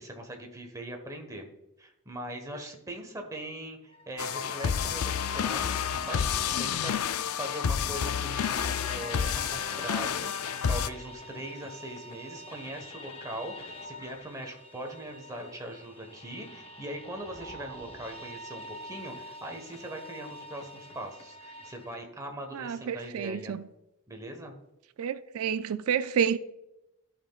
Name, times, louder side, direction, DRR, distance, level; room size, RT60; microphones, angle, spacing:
voice 1, 0.0-1.5 1.8-23.6 24.1-24.6, right 1 dB, 15° right, 1.3 m, -41 dB
sound 1, 3.9-22.0, equal, 25° left, 0.8 m, -47 dB
sound 2, 4.2-10.9, left 7 dB, 70° left, 0.4 m, -30 dB
voice 2, 22.5-23.6 25.0-26.4, right 8 dB, 70° right, 0.4 m, -29 dB
14.5 x 5.8 x 2.4 m
head